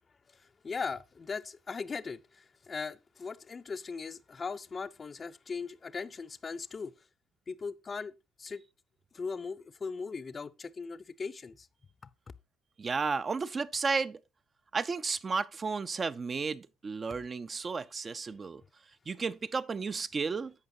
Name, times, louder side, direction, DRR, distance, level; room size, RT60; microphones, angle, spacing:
voice 1, 0.3-6.9 7.5-8.6 9.1-11.7, left 5 dB, 35° left, 0.6 m, -39 dB
voice 2, 12.8-14.2 14.7-18.6 19.1-20.5, right 4 dB, 35° right, 0.5 m, -33 dB
14.0 x 5.1 x 2.7 m
supercardioid pair, 70°, 0 cm